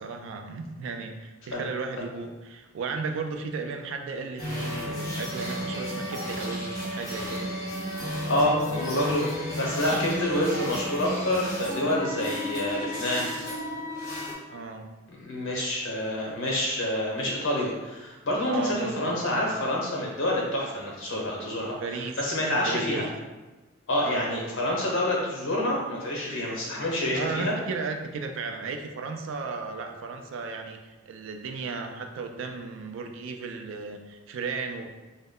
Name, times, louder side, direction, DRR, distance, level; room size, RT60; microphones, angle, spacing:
voice 1, 0.0-7.5 8.3-9.1 9.9-10.1 14.5-14.9 18.5-19.4 21.8-22.2 22.5-23.1 24.0-24.3 27.1-34.9, right 4 dB, 70° right, 4 dB, 0.3 m, -35 dB
sound 1, 4.4-14.3, equal, 15° left, 0.8 m, -33 dB
voice 2, 8.3-13.3 15.1-21.8 22.2-23.0 23.9-27.5, left 1 dB, 70° left, -2 dB, 0.8 m, -27 dB
2.2 x 2.1 x 3.6 m, 1.1 s
head